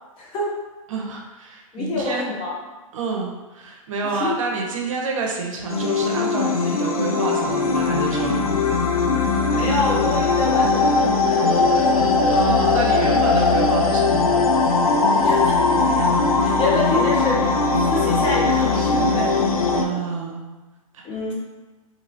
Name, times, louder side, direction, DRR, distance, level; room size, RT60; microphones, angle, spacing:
voice 1, 0.2-0.6 1.7-2.6 4.0-4.4 9.5-12.1 15.1-19.6 19.9-20.0 21.0-21.3, left 2 dB, 25° left, -4 dB, 0.6 m, -27 dB
voice 2, 0.9-2.3 2.9-8.4 12.3-14.5 19.7-20.4 20.9-21.0, right 4 dB, 65° right, -1 dB, 0.6 m, -28 dB
sound 1, 5.7-19.8, left 3 dB, 85° left, 0.4 m, -19 dB
2.9 x 2.7 x 2.6 m, 1.2 s
hypercardioid pair, 110°, 18 cm